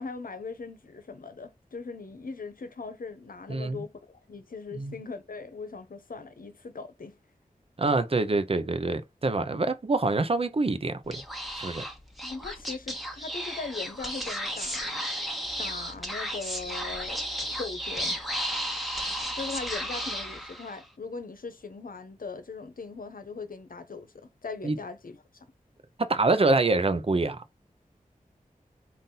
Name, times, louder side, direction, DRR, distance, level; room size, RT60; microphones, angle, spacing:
voice 1, 0.0-7.2 12.2-15.1 15.6-17.2 17.6-18.1 19.4-25.2, left 4 dB, 70° left, 0.9 m, -39 dB
voice 2, 3.5-3.8 4.7-5.0 7.8-11.2 11.5-11.8 24.6-24.8 26.0-27.4, right 3 dB, 40° right, 0.6 m, -26 dB
Speech / Whispering, 11.0-20.9, equal, ahead, 1.2 m, -34 dB
3.9 x 2.6 x 3.9 m
cardioid pair, 45°, 15 cm